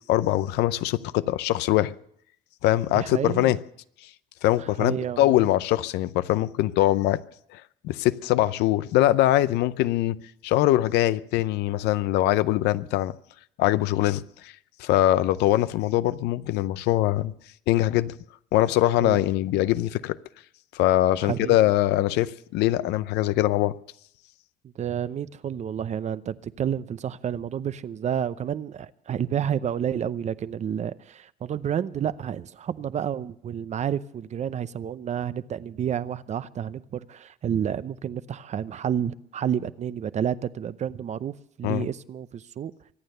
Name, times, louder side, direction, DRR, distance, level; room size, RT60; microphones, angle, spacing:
voice 1, 0.1-1.9 2.6-3.6 4.4-7.2 7.5-10.2 10.4-13.1 13.6-14.5 14.8-17.3 17.7-18.1 18.5-20.2 20.7-23.7 41.6-41.9, left 15 dB, 90° left, 0.6 m, -22 dB
voice 2, 2.9-3.5 4.6-5.5 19.0-19.2 21.2-21.6 24.8-42.7, right 9 dB, 45° right, 0.7 m, -30 dB
24.0 x 9.1 x 6.7 m
cardioid pair, 110°, 17 cm